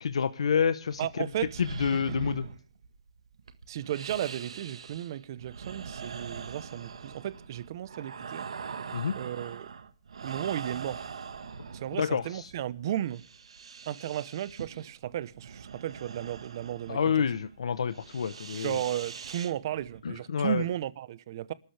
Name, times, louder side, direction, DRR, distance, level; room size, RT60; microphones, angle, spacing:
voice 1, 0.0-1.3 1.6-2.5 8.9-9.2 12.0-12.5 16.9-18.8 20.0-20.6, left 7 dB, 80° left, 1.0 m, -28 dB
sound 1, 0.8-20.0, right 6 dB, 90° right, 1.6 m, -43 dB
voice 2, 1.0-1.6 2.1-2.5 3.7-8.5 9.2-9.7 10.2-11.1 11.7-13.2 13.9-17.0 18.5-21.5, right 11 dB, 40° right, 0.9 m, -34 dB
28.5 x 13.0 x 3.4 m
hypercardioid pair, 165°, 3 cm